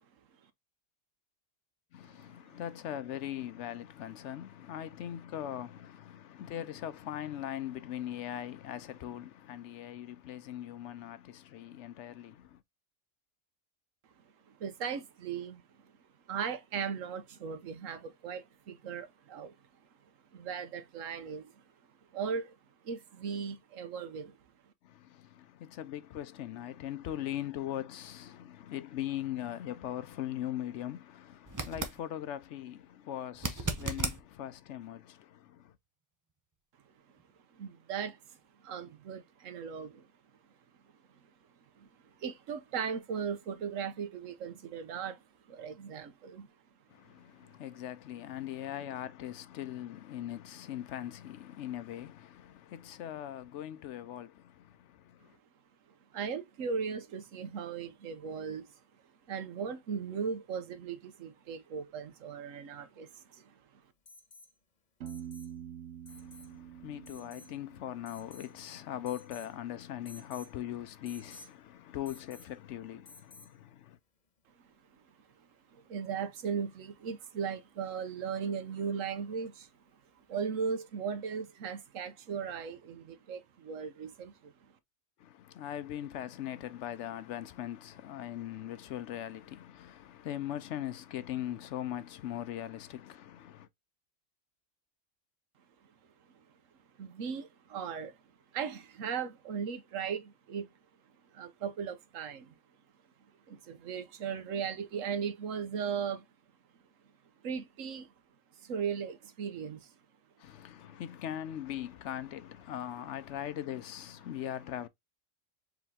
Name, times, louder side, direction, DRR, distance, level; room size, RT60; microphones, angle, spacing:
voice 1, 1.9-12.6 24.8-35.7 46.9-55.3 66.1-74.0 85.2-93.7 110.4-114.9, left 11 dB, 75° left, 0.9 m, -40 dB
voice 2, 14.5-15.9 16.3-19.5 20.3-21.6 22.1-22.6 22.8-24.4 37.5-38.4 38.6-40.1 41.7-41.9 42.2-45.2 45.5-46.5 56.1-58.7 59.3-63.6 75.4-79.7 80.3-84.7 96.3-96.4 97.0-98.2 98.5-100.7 101.3-102.6 103.5-106.2 107.4-108.1 108.6-109.9, right 6 dB, 90° right, 1.2 m, -37 dB
sound 1, 31.5-32.0 33.3-34.2 37.2-37.3, right 2 dB, 20° right, 0.5 m, -34 dB
Alarm, 64.1-64.5 65.1-65.5 66.1-66.5 67.1-67.5 68.1-68.6 69.1-69.5 70.1-70.5 71.1-71.5 72.1-72.6 73.1-73.6 75.3-75.4, left 2 dB, 40° left, 1.1 m, -54 dB
Piano, 65.0-68.7, right 9 dB, 65° right, 0.9 m, -47 dB
4.8 x 2.9 x 3.5 m
omnidirectional pair, 1.3 m